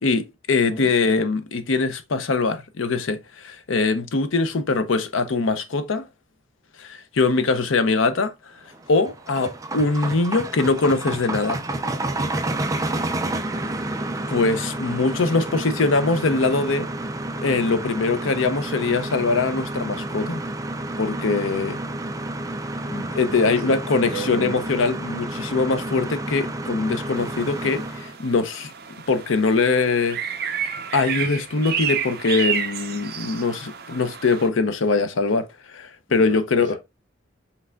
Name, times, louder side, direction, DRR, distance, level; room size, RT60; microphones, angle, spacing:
voice 1, 0.0-6.0 6.8-8.3 8.9-11.6 14.3-16.9 17.4-20.4 21.0-21.8 23.2-28.7 29.1-30.2 30.9-35.5 35.7-36.7, left 3 dB, 85° left, 0.6 m, -22 dB
voice 2, 0.6-0.9 22.8-23.2 23.5-24.6 36.1-36.8, equal, 25° left, 1.1 m, -36 dB
sound 1, 8.7-28.1, right 2 dB, 15° right, 0.4 m, -30 dB
sound 2, 27.2-34.5, right 7 dB, 55° right, 0.7 m, -31 dB
5.8 x 3.3 x 2.3 m
head